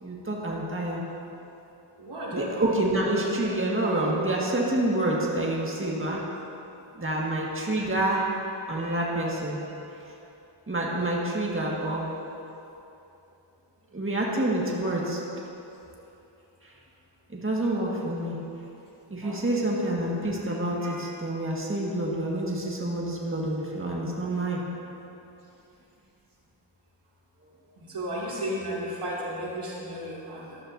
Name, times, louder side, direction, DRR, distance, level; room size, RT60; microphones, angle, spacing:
voice 1, 0.0-1.0 2.3-6.2 7.0-8.3 8.7-9.6 10.7-12.1 13.9-15.2 17.3-18.4 19.1-24.6, right 1 dB, 25° right, -4 dB, 1.8 m, -27 dB
voice 2, 2.0-2.5 8.1-8.2 8.8-9.0 19.2-19.4 20.8-20.9 27.9-30.6, equal, 85° right, -6 dB, 2.6 m, -34 dB
14.0 x 12.5 x 2.7 m, 2.9 s
wide cardioid pair, 60°, 50 cm